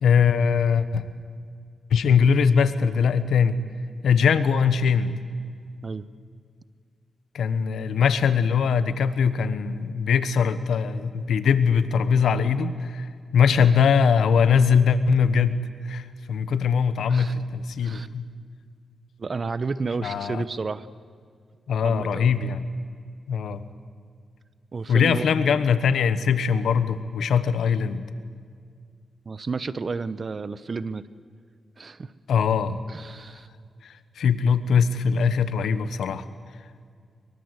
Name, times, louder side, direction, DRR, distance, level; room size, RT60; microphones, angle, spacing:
voice 1, 0.0-1.0 1.9-3.6 4.0-5.1 7.3-15.6 15.8-18.2 20.0-20.4 21.7-22.6 23.3-23.6 24.9-28.0 32.3-32.8 33.8-36.2, left 6 dB, 85° left, 13 dB, 1.2 m, -21 dB
voice 2, 17.1-17.4 17.8-18.1 19.2-20.9 21.8-22.3 24.7-25.5 29.2-31.1 31.8-32.1 32.9-33.5, right 4 dB, 45° right, 16 dB, 1.0 m, -31 dB
23.5 x 23.5 x 8.2 m, 2.1 s
cardioid pair, 75°, 0 cm